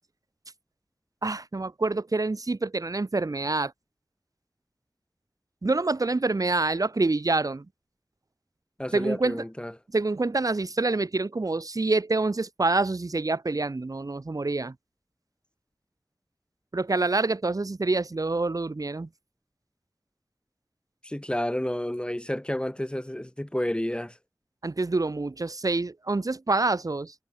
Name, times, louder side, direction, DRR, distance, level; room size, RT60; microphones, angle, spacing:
voice 1, 1.2-3.7 5.6-7.7 8.9-9.4 9.9-14.7 16.7-19.1 24.6-27.1, right 3 dB, 65° right, 6.4 m, -26 dB
voice 2, 8.8-9.7 21.0-24.2, left 1 dB, 15° left, 6.3 m, -30 dB
wide cardioid pair, 45°, 7 cm